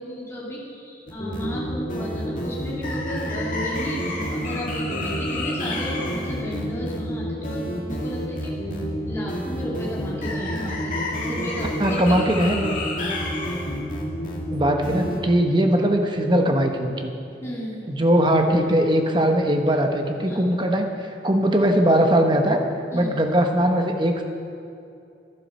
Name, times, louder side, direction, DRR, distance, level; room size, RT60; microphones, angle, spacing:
voice 1, 0.0-8.5 9.0-12.0 17.4-17.9 20.3-20.5 22.9-23.1, equal, 15° left, -6 dB, 2.9 m, -34 dB
sound 1, 1.1-15.2, left 1 dB, 50° left, 2.0 m, -28 dB
voice 2, 11.8-12.7 14.5-17.1 17.9-20.9 21.2-22.6 22.9-24.2, right 1 dB, 25° right, 4 dB, 1.0 m, -20 dB
11.0 x 10.5 x 6.6 m, 2.6 s
head